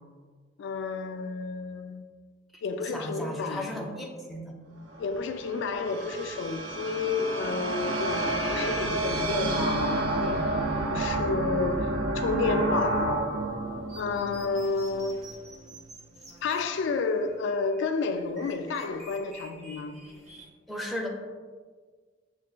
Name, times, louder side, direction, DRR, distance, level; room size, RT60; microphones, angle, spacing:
voice 1, 0.6-2.1 2.6-3.7 5.0-11.9 12.1-13.3 13.9-15.1 16.4-20.0, left 4 dB, 65° left, 0.3 m, -31 dB
voice 2, 2.9-4.6 20.7-21.1, left 1 dB, ahead, 0.4 m, -35 dB
sound 1, 4.9-15.2, right 2 dB, 85° right, 0.4 m, -30 dB
sound 2, 13.9-20.5, right 2 dB, 35° right, 0.7 m, -50 dB
6.3 x 2.2 x 2.4 m
head